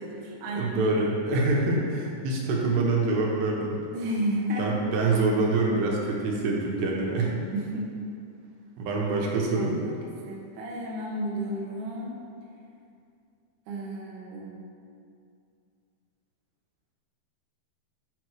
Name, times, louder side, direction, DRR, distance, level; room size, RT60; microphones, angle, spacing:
voice 1, 0.0-0.7 3.9-4.8 7.5-7.9 9.6-10.0 10.2-12.2 13.7-14.6, right 1 dB, 65° right, -4 dB, 2.0 m, -32 dB
voice 2, 0.6-3.8 4.6-7.4 8.8-9.8, right 3 dB, 85° right, -2 dB, 3.0 m, -25 dB
8.7 x 3.0 x 6.3 m, 2.4 s
omnidirectional pair, 4.8 m